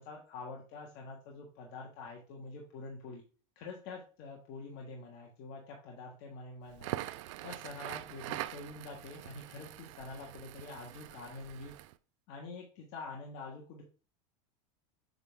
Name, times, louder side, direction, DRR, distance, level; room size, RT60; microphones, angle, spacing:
voice 1, 0.0-3.2 3.5-6.9 7.4-11.8 12.3-13.8, left 3 dB, 50° left, 0 dB, 1.5 m, -46 dB
Crackle, 6.7-11.9, right 16 dB, 70° right, 0.5 m, -43 dB
7.9 x 3.6 x 3.6 m, 0.37 s
supercardioid pair, 135°, 17 cm